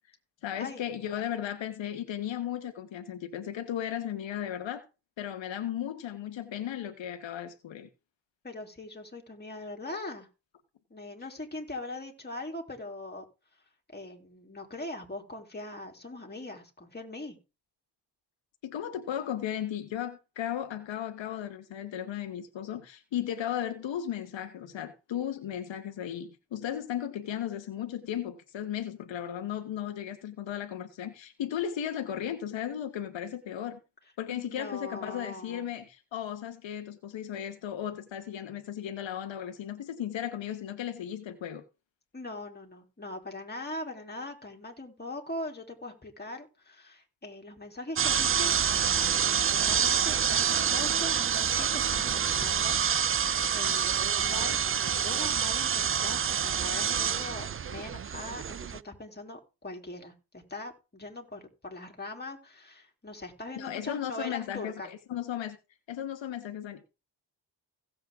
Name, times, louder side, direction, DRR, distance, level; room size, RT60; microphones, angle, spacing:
voice 1, 0.4-4.8 5.2-7.9 18.6-33.8 34.2-41.6 63.6-65.6 65.9-66.8, left 10 dB, 80° left, 1.4 m, -35 dB
voice 2, 8.4-10.3 10.9-13.2 13.9-17.4 34.3-35.7 42.1-48.5 48.8-49.2 49.5-64.9, left 2 dB, 20° left, 3.3 m, -41 dB
sound 1, 48.0-58.8, right 8 dB, 30° right, 0.5 m, -27 dB
16.5 x 7.8 x 3.6 m
cardioid pair, 75°, 44 cm